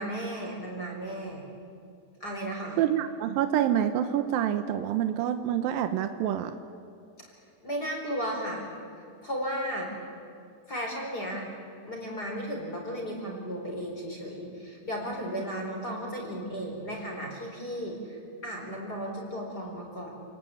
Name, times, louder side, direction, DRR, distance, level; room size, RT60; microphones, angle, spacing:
voice 1, 0.0-1.4 2.2-2.8 7.6-8.7 9.2-9.9 10.7-11.4 11.9-20.1, equal, 20° left, 0 dB, 4.7 m, -35 dB
voice 2, 2.8-6.5, right 10 dB, 75° right, 8 dB, 2.2 m, -27 dB
29.5 x 20.0 x 8.6 m, 2.4 s
omnidirectional pair, 5.4 m